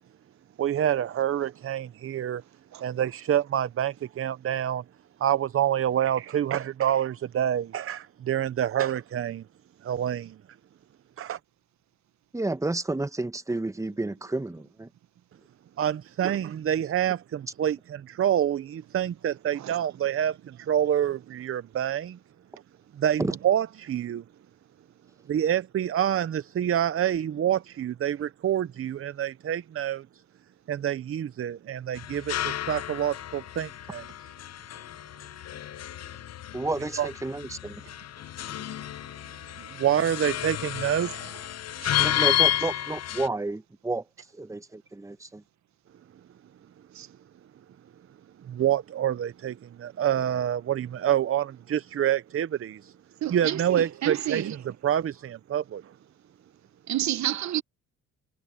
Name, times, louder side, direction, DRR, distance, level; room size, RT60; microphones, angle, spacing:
voice 1, 0.6-2.4 2.8-4.8 5.2-9.4 9.8-10.4 11.2-11.4 15.8-22.2 23.0-24.2 25.3-30.1 30.7-34.0 37.0-37.1 39.6-41.3 48.5-52.9 53.3-54.4 54.8-55.8, right 10 dB, 45° right, 0.8 m, -27 dB
voice 2, 12.3-14.9 23.2-23.3 36.5-37.8 42.0-44.0 44.3-45.4, right 2 dB, 10° right, 1.2 m, -31 dB
sound 1, 32.0-43.3, left 13 dB, 55° left, 0.9 m, -31 dB
voice 3, 41.8-42.1 46.9-47.1 53.2-54.6 56.9-57.6, right 12 dB, 65° right, 1.4 m, -30 dB
cardioid pair, 90°, 30 cm